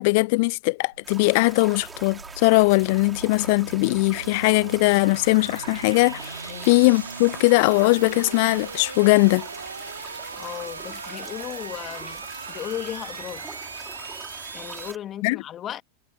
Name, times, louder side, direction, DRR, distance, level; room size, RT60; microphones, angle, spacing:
voice 1, 0.0-6.4 6.6-9.5 15.2-15.4, left 26 dB, 50° left, 0.5 m, -20 dB
sound 1, 0.9-14.9, right 4 dB, 75° right, 1.1 m, -38 dB
sound 2, 1.0-15.0, right 4 dB, 15° right, 3.6 m, -43 dB
voice 2, 10.4-12.2 12.5-13.5 14.5-15.8, left 11 dB, 30° left, 2.4 m, -35 dB
figure-of-eight pair, 90°, 0 cm